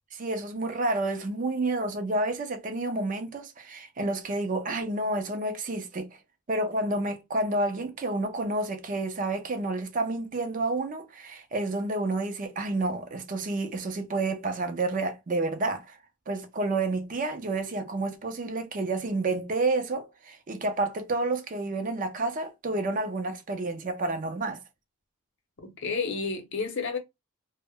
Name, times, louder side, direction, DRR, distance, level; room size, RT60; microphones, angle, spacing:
voice 1, 0.1-6.1 6.5-16.0 16.3-24.6, right 2 dB, 35° right, 0.4 m, -30 dB
voice 2, 25.6-27.0, left 4 dB, 60° left, 0.7 m, -31 dB
2.0 x 2.0 x 3.4 m
head